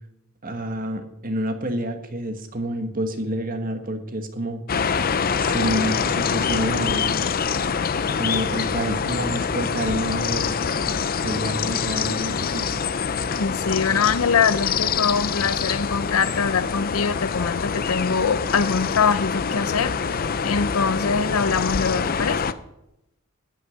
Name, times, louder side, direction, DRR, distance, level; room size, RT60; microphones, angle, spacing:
voice 1, 0.4-4.6 5.4-7.1 8.1-10.5 11.2-12.8, right 1 dB, 40° right, 7 dB, 1.5 m, -28 dB
sound 1, 4.7-22.5, left 6 dB, 45° left, 0.6 m, -25 dB
voice 2, 13.4-22.5, left 5 dB, 85° left, 15 dB, 0.7 m, -23 dB
14.0 x 6.5 x 9.4 m, 0.88 s
head